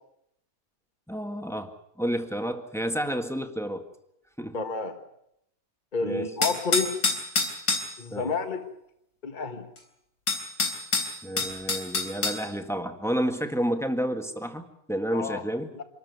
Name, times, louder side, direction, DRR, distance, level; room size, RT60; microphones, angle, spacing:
voice 1, 1.1-3.8 4.4-4.6 6.0-6.3 8.1-8.3 11.2-15.7, equal, ahead, 6 dB, 1.8 m, -30 dB
voice 2, 4.5-4.9 5.9-7.0 8.0-8.6 9.2-9.7 15.1-15.4 15.8-15.9, left 4 dB, 35° left, 6 dB, 1.7 m, -29 dB
sound 1, 6.4-7.9 9.8-9.9 10.3-12.4, left 3 dB, 90° left, 4.2 m, -26 dB
26.5 x 14.0 x 9.6 m, 0.78 s
omnidirectional pair, 1.5 m